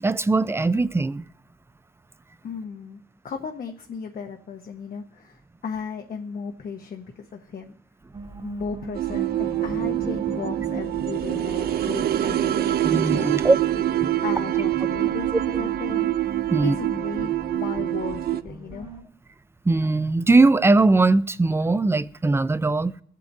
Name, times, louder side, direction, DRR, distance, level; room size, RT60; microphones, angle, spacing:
voice 1, 0.0-1.2 12.8-13.6 14.0-14.1 16.5-16.8 19.7-22.9, right 3 dB, 15° right, 0.4 m, -20 dB
voice 2, 2.4-7.7 8.4-13.4 14.2-16.1 16.6-18.9, left 6 dB, 65° left, 0.8 m, -35 dB
sound 1, 8.1-19.0, right 2 dB, 35° right, 1.6 m, -38 dB
sound 2, 8.9-18.4, right 13 dB, 75° right, 0.4 m, -25 dB
22.0 x 8.3 x 2.6 m
cardioid pair, 85°, 16 cm